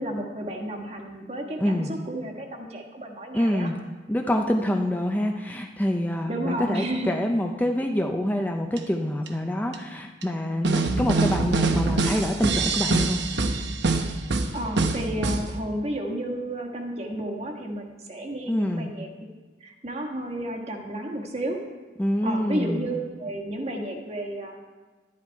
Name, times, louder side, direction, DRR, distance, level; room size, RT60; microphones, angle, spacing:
voice 1, 0.0-3.7 6.3-7.1 14.5-19.1 19.6-21.6 22.2-24.6, right 1 dB, 35° right, 2 dB, 1.5 m, -32 dB
voice 2, 1.6-1.9 3.3-3.8 4.1-13.2 18.5-18.9 22.0-22.9, left 1 dB, 10° left, 3 dB, 0.6 m, -26 dB
sound 1, 8.8-8.9 9.3-9.4 9.7-9.8 10.2-10.3 10.6-15.5, right 3 dB, 75° right, 0.9 m, -24 dB
11.5 x 11.0 x 4.6 m, 1.3 s
head